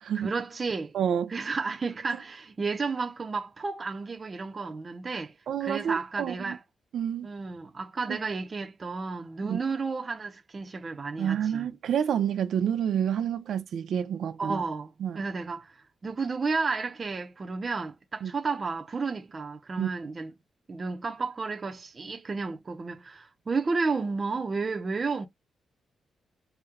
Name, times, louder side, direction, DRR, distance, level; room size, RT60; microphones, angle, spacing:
voice 1, 0.1-1.0 1.3-5.3 5.6-6.6 7.2-11.7 14.4-20.3 20.7-25.3, right 4 dB, 25° right, 0.6 m, -32 dB
voice 2, 0.9-1.3 5.5-6.6 6.9-7.3 8.1-8.2 9.4-9.6 11.2-14.6 15.0-15.2 18.2-18.3 19.8-19.9, right 8 dB, 65° right, 0.6 m, -28 dB
4.4 x 2.2 x 3.6 m
wide cardioid pair, 180°, 0 cm